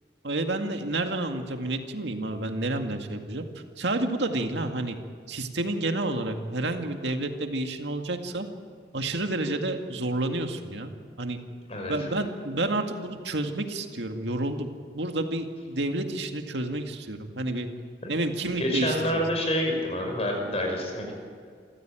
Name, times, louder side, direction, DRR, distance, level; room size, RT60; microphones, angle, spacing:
voice 1, 0.2-3.4 3.8-5.0 5.3-8.5 8.9-11.4 11.9-14.7 14.9-17.7 18.1-19.1, right 2 dB, 80° right, 5 dB, 2.0 m, -30 dB
voice 2, 18.6-21.2, equal, 35° left, 2 dB, 5.7 m, -28 dB
27.5 x 15.0 x 9.1 m, 2.1 s
head